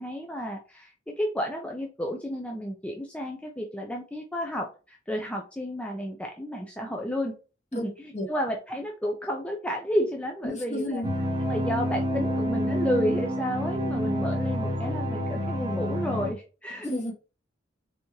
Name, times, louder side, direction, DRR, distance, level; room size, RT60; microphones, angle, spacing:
voice 1, 0.0-7.3 7.7-11.0 11.5-16.9, equal, 5° left, 1 dB, 0.5 m, -31 dB
voice 2, 10.4-11.1 16.9-17.1, left 1 dB, 35° left, 2 dB, 1.2 m, -31 dB
sound 1, 11.0-16.3, equal, 25° right, 0.9 m, -28 dB
4.1 x 3.5 x 3.0 m, 0.34 s
head